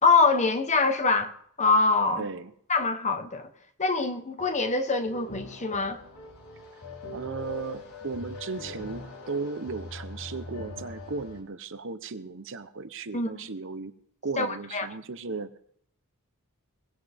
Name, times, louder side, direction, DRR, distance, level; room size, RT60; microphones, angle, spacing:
voice 1, 0.0-1.3 1.6-2.3 2.7-3.5 3.8-6.0 13.1-13.5 14.4-14.9, left 4 dB, 30° left, 1.2 m, -24 dB
voice 2, 2.2-2.5 7.1-13.9 14.2-15.6, right 4 dB, 60° right, 0.9 m, -36 dB
sound 1, 4.4-11.4, left 2 dB, 85° left, 4.5 m, -42 dB
21.5 x 18.5 x 3.6 m
head